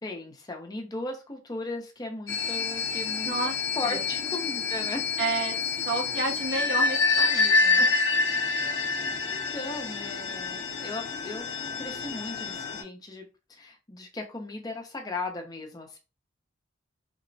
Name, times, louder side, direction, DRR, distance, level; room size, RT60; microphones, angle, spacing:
voice 1, 0.0-3.4 3.8-5.0 7.7-7.9 8.5-8.8 9.3-11.5 11.8-16.0, left 2 dB, 20° left, 2 dB, 0.5 m, -37 dB
sound 1, 2.3-12.8, left 4 dB, 70° left, 0.6 m, -27 dB
voice 2, 3.2-3.6 3.9-4.0 5.2-5.6 5.8-7.9, right 3 dB, 70° right, -1 dB, 0.8 m, -31 dB
2.9 x 2.0 x 2.6 m, 0.30 s
head